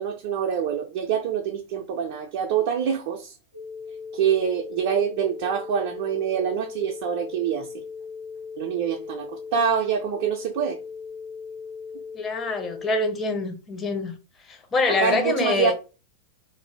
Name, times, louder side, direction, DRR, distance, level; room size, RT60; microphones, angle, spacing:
voice 1, 0.0-3.3 4.1-7.8 8.6-10.8 14.9-15.7, right 8 dB, 50° right, 0.3 m, -25 dB
sound 1, 3.5-13.0, left 5 dB, 45° left, 0.9 m, -38 dB
voice 2, 12.1-14.1 14.5-15.7, left 3 dB, 20° left, 0.6 m, -25 dB
2.5 x 2.0 x 3.1 m
figure-of-eight pair, 90°, 0 cm